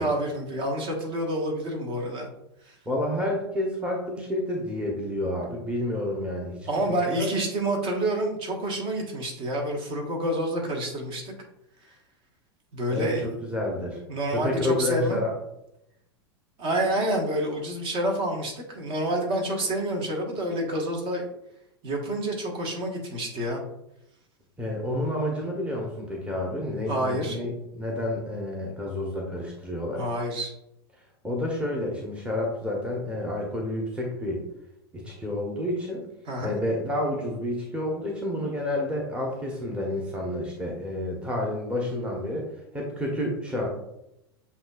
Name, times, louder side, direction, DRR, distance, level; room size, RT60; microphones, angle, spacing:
voice 1, 0.0-2.3 2.6-2.8 6.7-11.3 12.7-13.3 14.1-15.2 16.6-21.3 21.8-23.6 26.9-27.4 29.9-30.5 36.3-36.6, right 1 dB, 40° right, 0 dB, 1.4 m, -28 dB
voice 2, 2.9-6.7 7.1-7.3 12.9-14.0 14.3-15.3 24.6-30.1 31.2-34.4 34.9-36.1 36.4-42.4 42.7-43.7, left 1 dB, 10° right, -1 dB, 0.9 m, -29 dB
7.7 x 2.8 x 2.4 m, 0.83 s
figure-of-eight pair, 90°, 13 cm